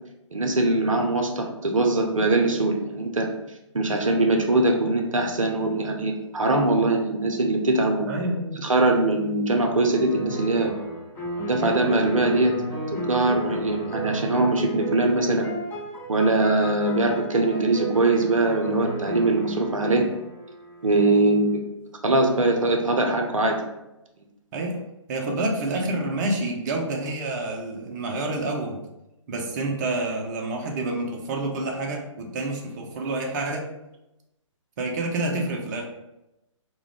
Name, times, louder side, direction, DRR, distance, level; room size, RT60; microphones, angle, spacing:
voice 1, 0.3-3.3 3.7-8.1 8.6-10.8 11.4-12.6 12.9-15.5 16.1-20.1 20.8-21.6 22.0-23.6, right 2 dB, 90° right, 2 dB, 0.5 m, -22 dB
voice 2, 8.1-8.6 24.5-24.8 25.1-28.8 29.3-33.7 34.8-35.8, right 2 dB, 35° right, 0 dB, 0.4 m, -28 dB
sound 1, 9.9-21.4, right 1 dB, 10° left, 0.6 m, -33 dB
2.3 x 2.1 x 3.2 m, 0.92 s
figure-of-eight pair, 130°, 16 cm